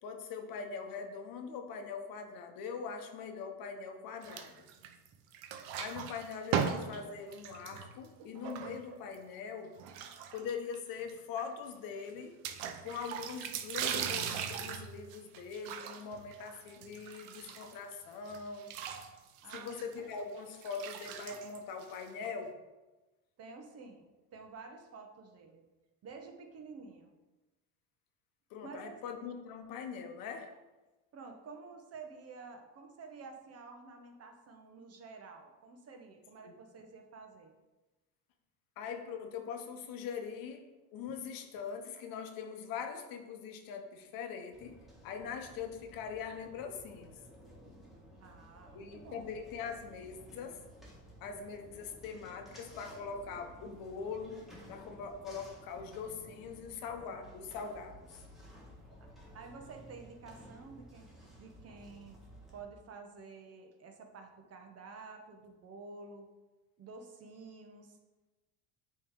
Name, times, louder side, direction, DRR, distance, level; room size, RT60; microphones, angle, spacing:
voice 1, 0.0-4.5 5.7-9.7 10.3-12.4 12.8-18.7 19.5-22.5 28.5-30.5 36.4-36.5 38.8-40.7 40.9-44.8 45.0-47.2 48.7-50.6 51.2-54.4 54.7-58.0, left 6 dB, 65° left, 5 dB, 1.0 m, -42 dB
sound 1, 4.2-5.1 5.3-9.2 9.8-10.8 11.1-11.2 11.4-11.5 12.4-17.9 18.3-22.3, right 8 dB, 85° right, 0.7 m, -39 dB
voice 2, 19.4-19.8 23.4-24.0 24.3-25.6 26.0-27.1 28.6-29.0 31.1-37.5 48.2-49.3 59.0-59.1 59.3-62.2 62.5-66.3 66.8-68.0, right 4 dB, 40° right, 4 dB, 1.0 m, -50 dB
sound 2, 44.5-62.6, equal, ahead, 1.5 m, -55 dB
8.5 x 3.2 x 3.7 m, 1.1 s
supercardioid pair, 110°, 37 cm